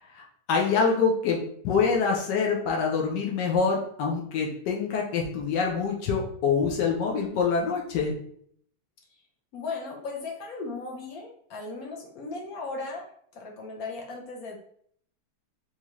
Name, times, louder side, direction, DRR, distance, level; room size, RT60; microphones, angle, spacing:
voice 1, 0.1-8.2, left 5 dB, 80° left, -1 dB, 1.3 m, -25 dB
voice 2, 9.5-13.0 13.3-14.6, left 3 dB, 65° left, -1 dB, 1.1 m, -36 dB
3.5 x 2.8 x 2.9 m, 0.63 s
omnidirectional pair, 1.8 m